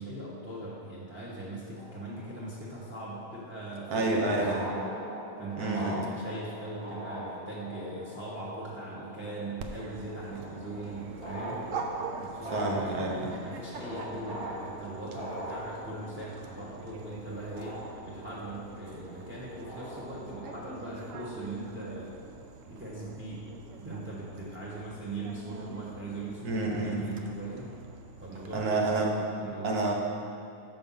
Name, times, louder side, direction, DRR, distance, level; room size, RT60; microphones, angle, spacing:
voice 1, 0.0-4.5 5.4-11.7 12.0-13.1 13.4-22.1 22.7-27.7 28.2-29.8, right 2 dB, 10° right, -6 dB, 0.8 m, -40 dB
sound 1, 1.7-2.8 4.0-4.1 4.3-20.8, equal, 40° right, 2.3 m, -42 dB
voice 2, 3.9-4.6 5.6-5.9 12.5-13.3 26.4-27.0 28.5-29.1 29.6-29.9, right 2 dB, 85° right, 0 dB, 1.5 m, -29 dB
Dog, 9.6-28.5, right 4 dB, 65° right, 1.0 m, -44 dB
6.7 x 5.3 x 5.5 m, 2.6 s
omnidirectional pair, 1.6 m